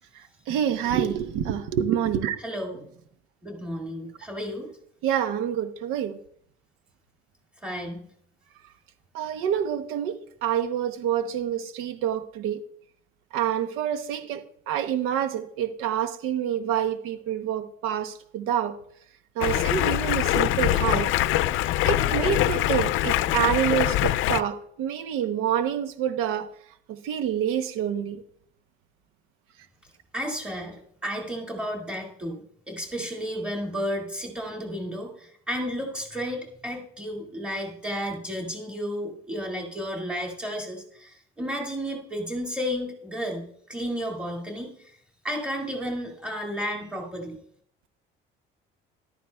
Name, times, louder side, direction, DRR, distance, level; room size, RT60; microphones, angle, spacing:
voice 1, 0.1-2.4 5.0-6.2 9.1-12.6 13.3-18.8 19.4-21.1 21.8-26.5 26.9-28.2, right 9 dB, 85° right, 0.8 m, -27 dB
voice 2, 2.4-2.8 3.4-4.7 7.6-8.1 30.1-30.8 31.0-44.9 45.2-47.4, equal, 5° right, 2.1 m, -32 dB
Stream, 19.4-24.4, left 14 dB, 70° left, 0.5 m, -23 dB
13.5 x 12.0 x 2.3 m
cardioid pair, 170°, 21 cm